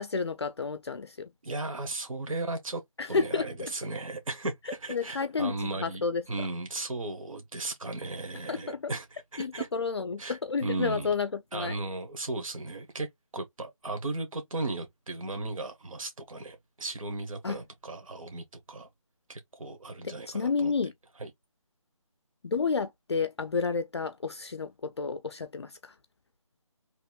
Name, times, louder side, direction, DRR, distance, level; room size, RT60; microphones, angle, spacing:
voice 1, 0.0-1.3 3.0-3.7 4.9-6.5 8.5-8.9 9.4-11.8 17.4-17.6 20.0-20.9 22.4-25.9, left 4 dB, 50° left, 0.4 m, -31 dB
voice 2, 1.4-2.8 3.1-6.0 6.3-9.7 10.2-11.1 11.5-13.1 13.3-18.9 19.3-20.7 21.2-21.3, right 2 dB, 75° right, 1.0 m, -36 dB
2.9 x 2.4 x 3.6 m
figure-of-eight pair, 165°, 17 cm